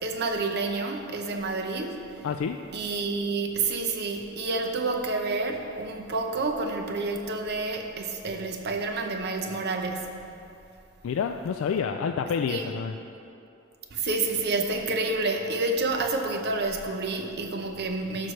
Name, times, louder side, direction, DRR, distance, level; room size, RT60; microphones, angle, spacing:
voice 1, 0.0-2.0 2.7-10.2 12.5-12.6 13.9-18.3, right 3 dB, 50° right, 4 dB, 0.7 m, -29 dB
voice 2, 2.2-2.6 11.0-13.0, left 6 dB, 70° left, 5 dB, 0.3 m, -28 dB
12.5 x 6.2 x 3.2 m, 2.6 s
head